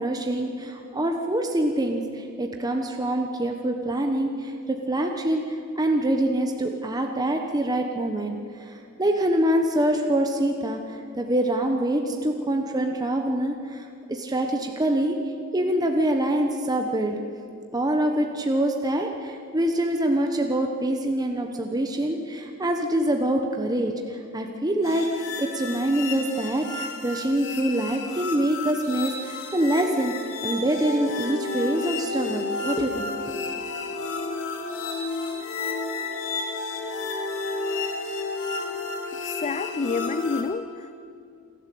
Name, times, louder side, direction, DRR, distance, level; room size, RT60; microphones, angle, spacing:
voice 1, 0.0-15.2 15.5-17.2 17.7-33.1, right 1 dB, 20° right, 3 dB, 1.1 m, -25 dB
sound 1, 24.8-40.4, left 3 dB, 65° left, 2.9 m, -32 dB
voice 2, 39.2-40.9, left 4 dB, 30° left, 14 dB, 0.4 m, -29 dB
28.0 x 11.5 x 8.5 m, 2.6 s
head